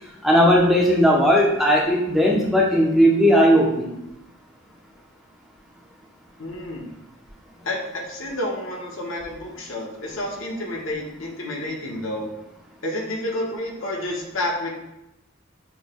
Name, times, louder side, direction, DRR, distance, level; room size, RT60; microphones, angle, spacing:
voice 1, 0.2-3.9, equal, ahead, -3 dB, 0.6 m, -17 dB
voice 2, 6.4-6.9 7.6-12.3 12.8-14.7, left 1 dB, 75° left, -1 dB, 1.0 m, -30 dB
6.1 x 2.2 x 3.5 m, 0.88 s
head